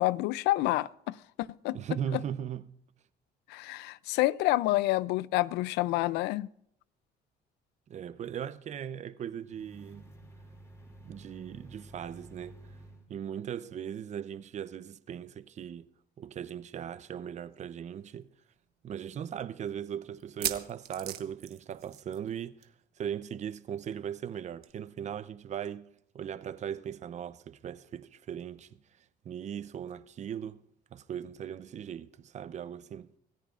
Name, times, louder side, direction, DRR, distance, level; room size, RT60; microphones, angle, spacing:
voice 1, 0.0-1.8 3.5-6.5, left 18 dB, 90° left, 0.4 m, -28 dB
voice 2, 1.7-2.6 7.9-10.1 11.0-12.6 13.1-15.9 16.2-18.3 18.8-22.7 23.0-25.9 26.1-28.8 29.2-30.6 30.9-33.1, right 9 dB, 45° right, 0.6 m, -38 dB
sound 1, 9.4-13.1, right 1 dB, 15° left, 2.5 m, -52 dB
sound 2, 17.5-17.6 17.9-18.0 18.6-18.7 20.2-22.3 22.6-22.8 23.1-23.2 24.6-24.7, right 11 dB, 70° right, 1.1 m, -37 dB
26.5 x 14.0 x 2.5 m
cardioid pair, 110°, 17 cm